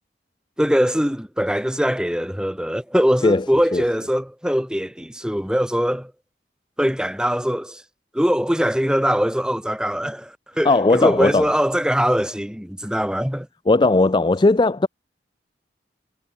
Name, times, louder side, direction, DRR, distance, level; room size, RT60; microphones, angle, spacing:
voice 1, 0.6-6.1 6.8-7.8 8.1-13.5, equal, 5° right, 2.4 m, -22 dB
voice 2, 10.6-11.5 13.7-14.9, left 2 dB, 25° left, 0.4 m, -17 dB
head